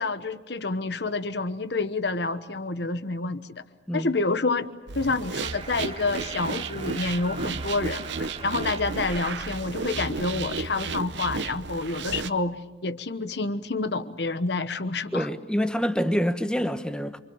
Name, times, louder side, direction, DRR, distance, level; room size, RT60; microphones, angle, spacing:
voice 1, 0.0-3.6 3.9-4.7 4.9-15.3, left 3 dB, 60° left, 1.1 m, -28 dB
sound 1, 4.9-12.3, right 4 dB, 70° right, 0.9 m, -33 dB
sound 2, 5.4-10.3, right 4 dB, 30° right, 1.9 m, -43 dB
voice 2, 15.1-17.2, equal, 5° left, 1.1 m, -26 dB
28.0 x 24.5 x 7.2 m
head